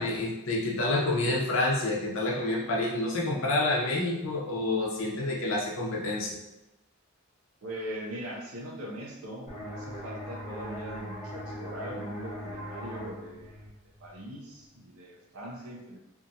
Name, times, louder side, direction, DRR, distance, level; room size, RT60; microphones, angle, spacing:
voice 1, 0.0-6.4, left 2 dB, 65° left, -3 dB, 0.7 m, -28 dB
voice 2, 7.6-13.6 14.0-16.0, right 1 dB, 85° right, -3 dB, 0.6 m, -41 dB
sound 1, 9.5-14.9, equal, 30° left, 0.8 m, -41 dB
2.7 x 2.3 x 2.7 m, 0.95 s
head